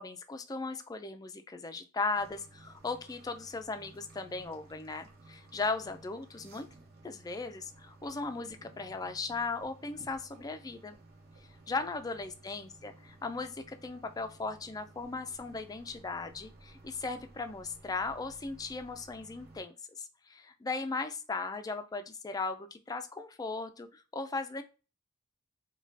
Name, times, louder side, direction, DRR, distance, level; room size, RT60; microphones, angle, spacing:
voice 1, 0.0-6.7 7.0-11.0 11.7-24.6, left 3 dB, 20° left, 8 dB, 0.3 m, -37 dB
sound 1, 2.1-19.6, right 2 dB, 50° right, 0.9 m, -56 dB
5.0 x 2.3 x 2.6 m, 0.34 s
head